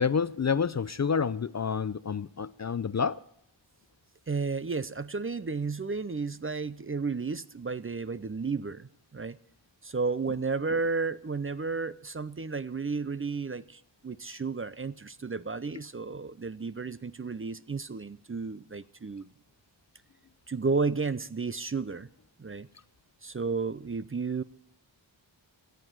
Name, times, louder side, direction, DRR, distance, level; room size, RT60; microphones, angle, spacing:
voice 1, 0.0-3.2, left 6 dB, 35° left, 0.5 m, -28 dB
voice 2, 4.3-9.4 9.8-19.3 20.5-22.1 22.4-22.7 23.2-24.4, right 4 dB, 25° right, 0.5 m, -32 dB
14.0 x 8.1 x 9.0 m
cardioid pair, 40°, 48 cm